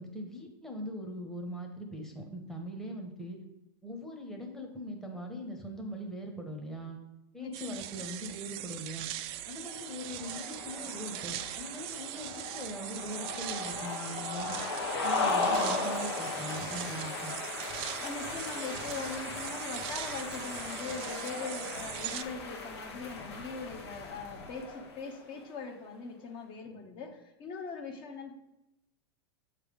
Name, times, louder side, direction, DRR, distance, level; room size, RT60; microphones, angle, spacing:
voice 1, 0.0-3.4 3.8-7.0 7.3-9.1 9.5-14.6 15.0-17.3, equal, 5° left, 1 dB, 0.9 m, -41 dB
voice 2, 7.4-7.8 18.0-28.3, left 4 dB, 40° left, 3 dB, 0.9 m, -41 dB
sound 1, 7.5-22.2, right 13 dB, 45° right, 0.4 m, -41 dB
sound 2, 9.6-25.2, left 3 dB, 85° left, 1.1 m, -37 dB
7.0 x 3.3 x 5.2 m, 0.90 s
hypercardioid pair, 115°, 14 cm